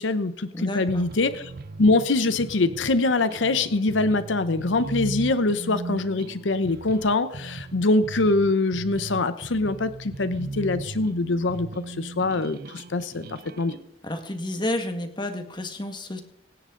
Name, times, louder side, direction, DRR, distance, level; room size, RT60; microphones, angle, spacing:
voice 1, 0.0-1.5 1.8-13.8, left 2 dB, 90° left, 12 dB, 0.8 m, -24 dB
voice 2, 0.5-1.0 14.0-16.2, left 1 dB, 25° left, 6 dB, 1.8 m, -30 dB
sound 1, 0.9-13.8, right 3 dB, 55° right, 0.6 m, -38 dB
25.0 x 10.0 x 3.9 m, 0.69 s
head